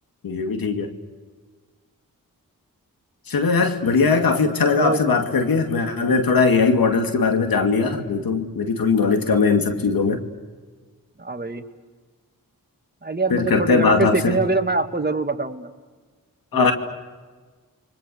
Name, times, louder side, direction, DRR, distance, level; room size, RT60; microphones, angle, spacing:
voice 1, 0.2-0.9 3.3-10.2 13.3-14.4 16.5-16.7, left 4 dB, 85° left, 5 dB, 2.6 m, -20 dB
voice 2, 4.7-5.0 11.2-11.6 13.0-15.7 16.5-16.7, right 3 dB, 30° right, 6 dB, 2.3 m, -24 dB
29.5 x 24.0 x 6.6 m, 1.4 s
cardioid pair, 45°, 34 cm